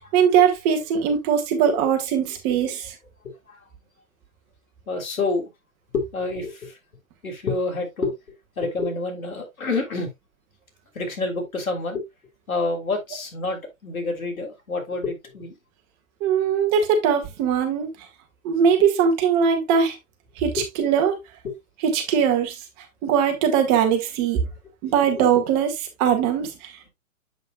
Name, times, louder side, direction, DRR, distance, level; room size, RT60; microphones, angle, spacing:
voice 1, 0.0-2.9 16.2-17.9 18.4-20.0 20.4-21.2 21.8-22.6 23.0-24.4 24.8-26.9, right 7 dB, 25° right, 1.7 m, -21 dB
voice 2, 3.2-3.6 4.9-5.5 5.9-6.8 7.2-8.2 8.6-10.1 10.9-12.1 12.5-15.5 20.6-20.7 21.4-21.6, left 3 dB, 80° left, 3.4 m, -28 dB
8.0 x 6.9 x 2.3 m
hypercardioid pair, 140°, 42 cm